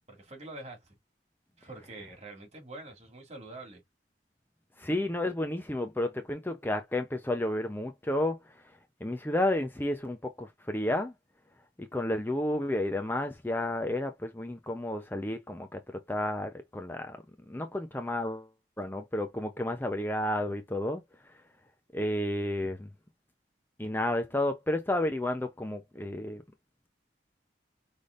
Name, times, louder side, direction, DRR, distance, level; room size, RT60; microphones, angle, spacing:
voice 1, 0.1-0.9 1.6-3.8, right 2 dB, 40° right, 2.1 m, -45 dB
voice 2, 4.8-8.4 9.0-11.1 11.8-17.2 17.5-18.5 18.8-21.3 21.9-22.9 23.8-26.4, left 1 dB, 10° left, 0.6 m, -31 dB
5.9 x 3.4 x 2.5 m
head